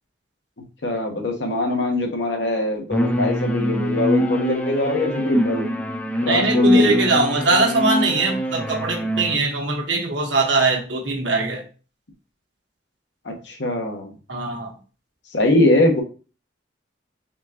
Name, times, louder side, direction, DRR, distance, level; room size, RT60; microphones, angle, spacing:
voice 1, 0.8-5.7 6.2-7.0 13.2-14.1 15.3-16.0, left 2 dB, 75° left, 2 dB, 1.1 m, -22 dB
sound 1, 2.9-9.4, left 1 dB, 10° left, 0.4 m, -23 dB
voice 2, 6.3-11.6 14.3-14.7, right 3 dB, 85° right, 0 dB, 1.3 m, -21 dB
4.3 x 3.6 x 2.9 m, 0.36 s
head